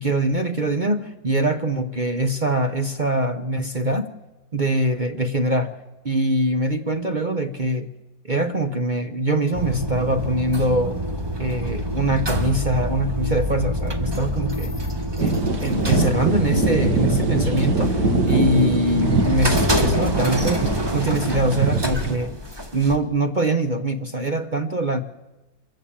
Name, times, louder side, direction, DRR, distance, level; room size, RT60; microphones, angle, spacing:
voice 1, 0.0-4.1 4.5-5.7 6.0-7.9 8.2-11.0 11.4-14.7 15.2-15.3 15.6-22.3 22.7-25.0, right 1 dB, 40° right, 8 dB, 0.7 m, -23 dB
sound 1, 9.5-23.0, equal, 15° right, 1.3 m, -26 dB
sound 2, 15.2-22.2, right 3 dB, 60° right, 2.4 m, -23 dB
25.0 x 14.5 x 8.7 m, 1.1 s
omnidirectional pair, 2.1 m